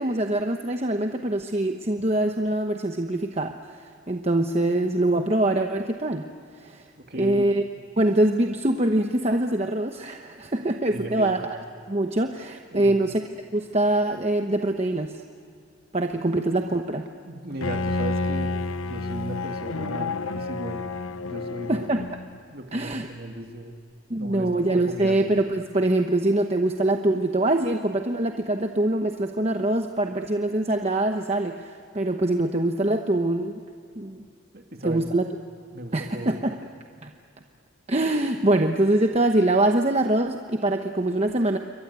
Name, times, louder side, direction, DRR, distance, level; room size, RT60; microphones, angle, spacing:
voice 1, 0.0-6.3 6.6-6.8 7.1-7.6 8.0-11.6 11.9-13.2 13.5-15.2 15.9-17.1 21.7-22.1 22.7-23.1 24.1-33.6 34.0-34.2 34.8-35.2 35.9-36.6 37.0-37.1 37.9-41.6, right 1 dB, 30° right, 4 dB, 1.0 m, -24 dB
voice 2, 7.1-7.5 10.9-11.4 12.7-13.0 17.2-18.5 18.8-20.9 21.2-21.8 22.5-23.8 24.2-25.2 34.5-35.0 35.7-36.3, right 1 dB, 50° right, 4 dB, 2.5 m, -36 dB
Bowed string instrument, 17.6-22.4, left 3 dB, 90° left, 0.8 m, -30 dB
28.5 x 23.5 x 8.3 m, 2.5 s
head